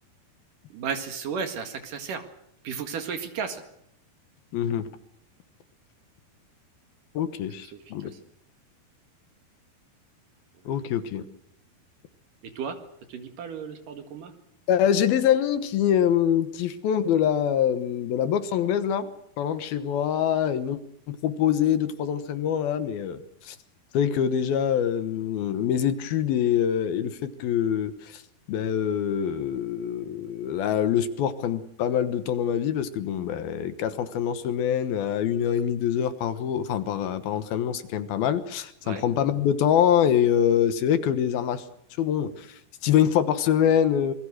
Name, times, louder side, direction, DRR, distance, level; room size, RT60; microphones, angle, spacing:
voice 1, 0.7-2.3 2.6-3.6 7.6-8.1 12.4-12.8 13.1-14.3 38.8-39.0, right 6 dB, 60° right, 7 dB, 3.3 m, -34 dB
voice 2, 4.5-4.9 7.1-8.1 10.7-11.3 14.7-19.1 19.4-20.8 21.1-23.6 23.9-28.2 28.5-41.6 42.0-44.1, left 9 dB, 70° left, 11 dB, 3.0 m, -25 dB
26.5 x 21.5 x 6.4 m, 0.75 s
omnidirectional pair, 4.6 m